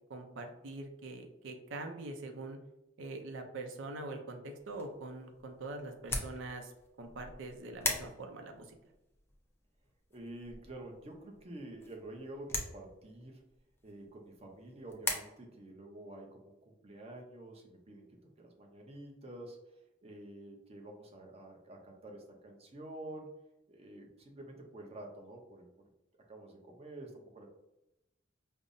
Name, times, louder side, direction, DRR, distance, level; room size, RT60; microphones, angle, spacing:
voice 1, 0.1-2.6 3.0-6.7 7.0-8.8, right 2 dB, 85° right, 4 dB, 0.5 m, -43 dB
sound 1, 4.6-15.1, left 2 dB, 15° left, 0.4 m, -42 dB
voice 2, 10.1-13.4 13.8-18.1 18.4-19.6 20.0-23.3 23.7-25.7 26.3-27.5, right 1 dB, 35° right, 1 dB, 0.7 m, -49 dB
5.2 x 2.0 x 2.6 m, 0.91 s
head